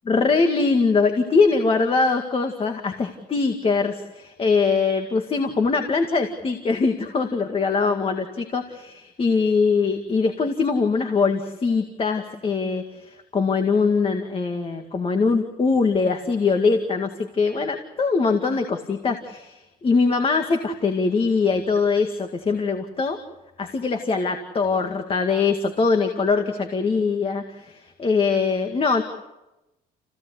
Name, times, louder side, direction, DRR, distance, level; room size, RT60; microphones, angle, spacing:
voice 1, 0.1-23.2 23.6-29.0, left 4 dB, 35° left, 5 dB, 2.1 m, -22 dB
30.0 x 16.5 x 8.3 m, 0.97 s
cardioid pair, 110°, 17 cm